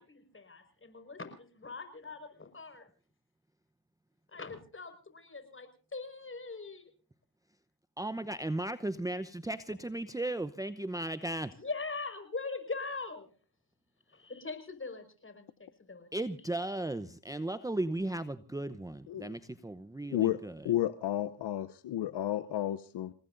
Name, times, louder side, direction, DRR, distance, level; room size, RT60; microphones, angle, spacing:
voice 1, 0.0-2.9 4.3-6.9 11.5-13.3 14.1-16.1, left 4 dB, 30° left, 8 dB, 5.4 m, -42 dB
voice 2, 8.0-11.5 16.1-20.6, right 1 dB, 10° right, 13 dB, 0.8 m, -36 dB
voice 3, 20.6-23.1, left 12 dB, 65° left, 14 dB, 0.9 m, -32 dB
29.5 x 18.5 x 2.6 m, 0.38 s
cardioid pair, 70°, 43 cm